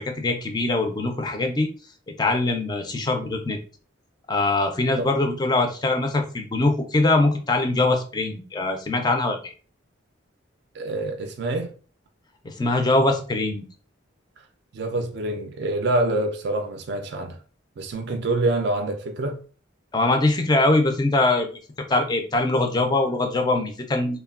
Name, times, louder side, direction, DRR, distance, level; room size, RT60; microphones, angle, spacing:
voice 1, 0.0-1.7 2.2-3.6 4.3-9.5 12.4-13.6 19.9-21.5 21.9-24.2, left 2 dB, 20° left, 0.3 m, -22 dB
voice 2, 10.7-11.7 14.7-17.4 17.8-19.4, right 2 dB, 55° right, 0.4 m, -26 dB
3.1 x 2.1 x 2.3 m
head